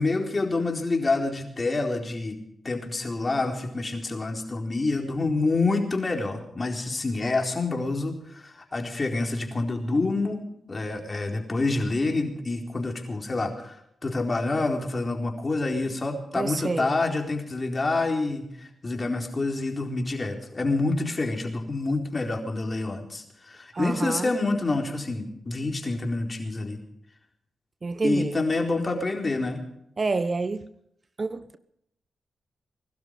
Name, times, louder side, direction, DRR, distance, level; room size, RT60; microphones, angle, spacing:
voice 1, 0.0-13.8 14.0-26.8 28.0-29.6, left 3 dB, 40° left, 4.1 m, -27 dB
voice 2, 16.3-16.9 23.7-24.4 27.8-28.4 30.0-30.7 31.2-31.6, right 3 dB, 45° right, 1.1 m, -28 dB
21.5 x 12.5 x 5.2 m
supercardioid pair, 45°, 0 cm